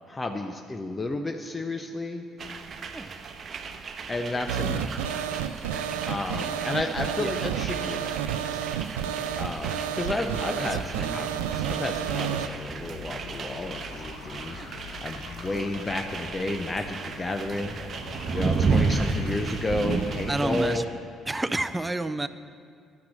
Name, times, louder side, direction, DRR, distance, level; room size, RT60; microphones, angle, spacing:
voice 1, 0.1-2.2 4.1-5.2 6.1-8.1 9.4-14.6 15.0-17.7 18.3-20.9, left 2 dB, 25° left, 5 dB, 0.7 m, -32 dB
sound 1, 2.4-20.8, right 4 dB, 45° right, 0.9 m, -33 dB
sound 2, 4.5-12.5, right 9 dB, 80° right, 0.3 m, -30 dB
voice 2, 10.1-10.7 11.0-11.3 14.5-14.7 18.7-19.1 20.3-20.8 21.3-22.3, right 2 dB, 15° right, 13 dB, 0.5 m, -31 dB
sound 3, 12.7-20.8, left 9 dB, 70° left, 0.5 m, -45 dB
10.0 x 5.9 x 7.5 m, 2.1 s
hypercardioid pair, 50°, 0 cm